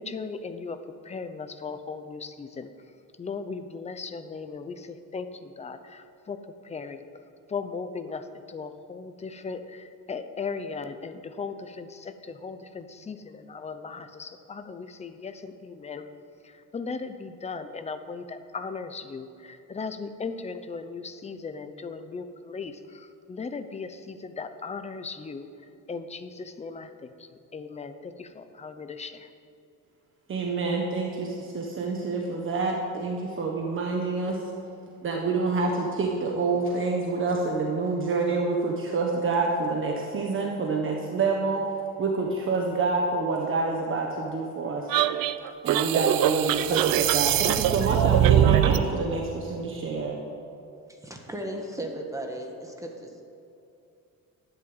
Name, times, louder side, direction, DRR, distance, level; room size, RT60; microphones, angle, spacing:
voice 1, 0.0-2.7 3.2-7.0 7.5-16.1 16.4-29.3, left 4 dB, 20° left, 9 dB, 0.8 m, -37 dB
voice 2, 30.3-34.4 35.0-41.6 42.0-44.9 45.6-50.2, right 3 dB, 35° right, 0 dB, 1.5 m, -27 dB
sound 1, 44.9-48.9, right 11 dB, 80° right, 0.7 m, -22 dB
voice 3, 50.9-53.2, right 1 dB, 10° right, 2 dB, 1.5 m, -36 dB
12.0 x 11.0 x 9.0 m, 2.7 s
cardioid pair, 160°, 34 cm